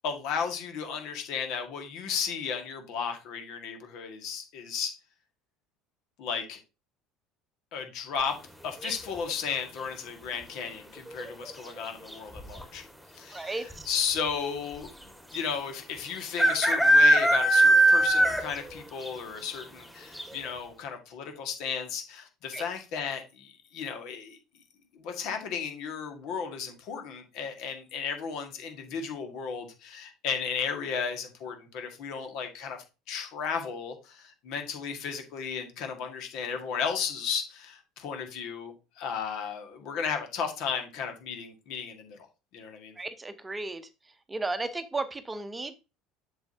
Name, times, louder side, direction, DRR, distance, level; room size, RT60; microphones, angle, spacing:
voice 1, 0.0-4.9 6.2-6.6 7.7-8.3 8.6-12.8 13.1-14.9 15.3-24.4 24.9-32.8 33.1-42.3 42.5-42.9, left 6 dB, 60° left, 5 dB, 1.7 m, -34 dB
sound 1, 8.8-9.3 11.1-11.5 11.8-11.9 12.1-12.6 13.4-13.5 13.7-13.8 15.3-15.4 16.4-18.7 19.0-19.1 19.6-19.7 20.2-20.3, right 1 dB, 5° left, 1.8 m, -20 dB
voice 2, 13.3-13.9 22.5-22.6 43.0-43.9 44.3-45.7, right 3 dB, 20° right, 10 dB, 0.8 m, -34 dB
7.8 x 6.4 x 2.7 m, 0.29 s
hypercardioid pair, 70°, 0 cm